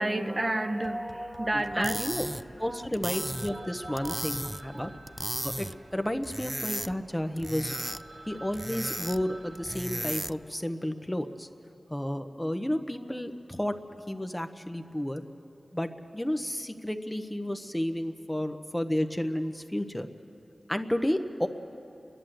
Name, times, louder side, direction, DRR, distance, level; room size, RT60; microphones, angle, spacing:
voice 1, 0.0-2.0 2.6-2.9 3.5-4.1 4.7-4.9, right 1 dB, 35° right, 7 dB, 0.8 m, -31 dB
sound 1, 0.8-5.7, left 1 dB, 70° left, 1.1 m, -52 dB
voice 2, 1.5-2.3 2.6-4.9 5.4-5.7 5.9-7.8 8.3-11.5 11.9-13.7 14.1-15.2 15.7-20.1 20.7-21.5, left 1 dB, 10° left, 7 dB, 1.0 m, -32 dB
sound 2, 1.6-10.5, equal, 10° right, 0.4 m, -36 dB
Telephone, 3.1-6.9 7.4-7.5 7.7-10.6, right 2 dB, 60° right, 1.0 m, -49 dB
30.0 x 11.0 x 7.8 m, 2.8 s
wide cardioid pair, 55°, 0 cm